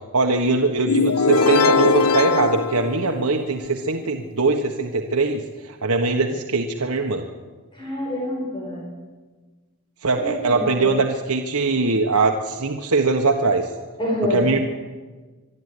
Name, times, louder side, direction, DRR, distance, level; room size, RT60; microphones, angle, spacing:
voice 1, 0.1-7.3 10.0-13.7 14.3-14.6, right 3 dB, 85° right, 3 dB, 1.4 m, -21 dB
sound 1, 0.9-3.7, left 4 dB, 85° left, 0.7 m, -20 dB
voice 2, 7.7-8.9 10.2-10.9 14.0-14.4, left 1 dB, 20° left, -3 dB, 5.2 m, -27 dB
23.5 x 12.5 x 10.0 m, 1.4 s
head